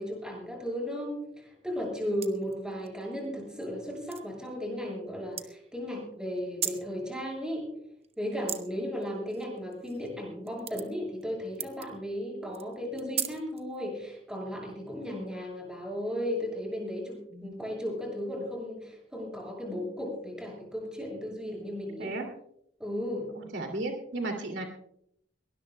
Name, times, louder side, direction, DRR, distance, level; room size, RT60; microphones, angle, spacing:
voice 1, 0.0-7.7 8.2-22.1 22.8-23.3, equal, 5° right, 0 dB, 7.0 m, -35 dB
sound 1, 2.1-2.9 3.5-3.7 4.0-4.2 5.3-5.4 6.4-6.9 8.0-8.6 9.0-10.1 10.4-11.2 11.6-11.9 12.5-13.8, right 9 dB, 35° right, 1.0 m, -36 dB
voice 2, 23.3-24.6, right 2 dB, 70° right, 4 dB, 2.6 m, -34 dB
22.5 x 19.5 x 2.2 m, 0.71 s
head